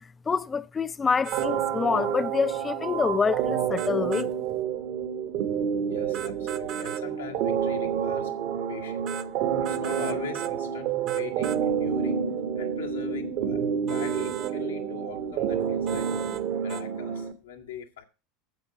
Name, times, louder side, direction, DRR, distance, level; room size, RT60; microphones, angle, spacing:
voice 1, 0.3-4.3, left 5 dB, 25° left, 0.5 m, -26 dB
sound 1, 1.2-1.5 3.8-4.3 6.1-7.1 9.1-9.3 9.7-10.6 11.1-11.6 13.9-14.5 15.9-16.4 16.7-16.9, right 10 dB, 45° right, 0.6 m, -38 dB
sound 2, 1.3-17.3, right 8 dB, 60° right, 1.4 m, -29 dB
voice 2, 5.9-8.3 8.7-9.1 9.6-12.3 12.6-16.1 16.6-18.0, left 8 dB, 85° left, 1.9 m, -41 dB
9.2 x 7.6 x 5.9 m
hypercardioid pair, 85°, 0 cm